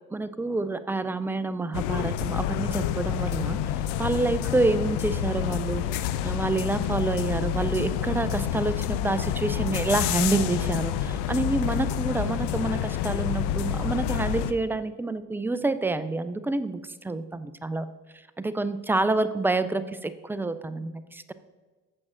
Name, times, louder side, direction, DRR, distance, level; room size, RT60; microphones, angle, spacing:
voice 1, 0.1-3.6 4.0-5.8 6.2-17.9 18.4-21.3, right 2 dB, 5° right, 13 dB, 0.3 m, -28 dB
sound 1, 1.7-14.5, left 10 dB, 60° left, 0.7 m, -28 dB
14.5 x 7.5 x 2.5 m, 1.3 s
hypercardioid pair, 55°, 44 cm